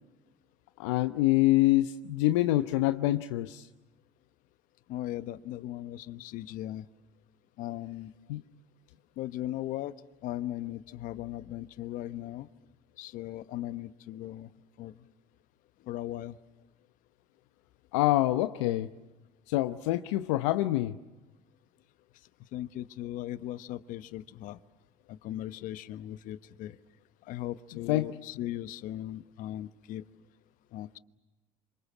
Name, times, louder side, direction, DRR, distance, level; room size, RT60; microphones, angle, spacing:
voice 1, 0.8-3.7 8.3-8.4 17.9-18.9 19.5-21.0 27.9-28.1, left 16 dB, 85° left, 10 dB, 0.8 m, -26 dB
voice 2, 4.9-6.9 7.6-8.1 9.2-9.9 10.2-12.5 13.0-14.5 14.8-14.9 15.9-16.4 22.5-24.6 25.1-26.8 27.3-30.0 30.7-31.0, left 13 dB, 65° left, 14 dB, 1.1 m, -38 dB
27.5 x 25.5 x 7.3 m, 1.1 s
hypercardioid pair, 75°, 15 cm